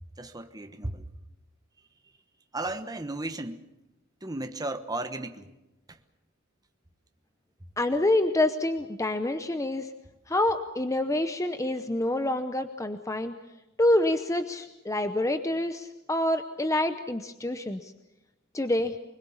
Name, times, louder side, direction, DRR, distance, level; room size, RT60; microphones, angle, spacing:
voice 1, 0.2-1.0 2.5-3.6 4.2-5.5, right 2 dB, 20° right, 1.2 m, -34 dB
voice 2, 7.8-9.9 10.3-13.4 13.8-17.9 18.5-19.0, left 1 dB, 15° left, 0.8 m, -27 dB
24.5 x 21.5 x 7.2 m
head